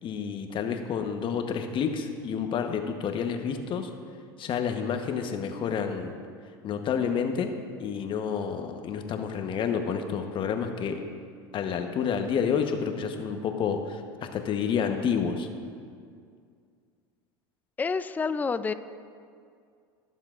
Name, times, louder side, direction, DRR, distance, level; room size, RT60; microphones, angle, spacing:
voice 1, 0.0-3.9 4.4-6.2 6.6-7.5 7.8-11.0 11.5-15.5, left 7 dB, 40° left, 6 dB, 1.0 m, -29 dB
voice 2, 17.8-18.7, left 4 dB, 15° left, 12 dB, 0.4 m, -28 dB
20.0 x 7.3 x 2.5 m, 2.2 s
hypercardioid pair, 85°, 12 cm